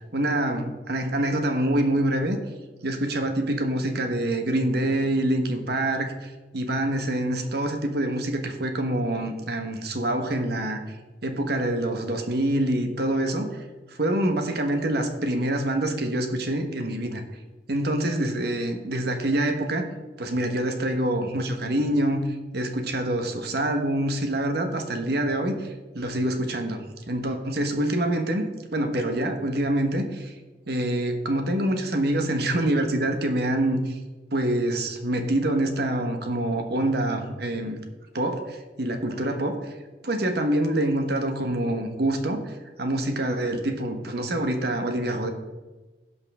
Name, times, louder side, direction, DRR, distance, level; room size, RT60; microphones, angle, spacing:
voice 1, 0.1-2.4 2.8-10.8 11.2-13.6 13.9-17.2 17.7-19.9 20.2-22.2 22.5-28.4 28.7-30.3 30.7-33.9 34.3-37.8 38.1-39.7 40.0-45.3, right 1 dB, 65° right, 6 dB, 1.2 m, -26 dB
16.5 x 5.5 x 3.6 m, 1.2 s
head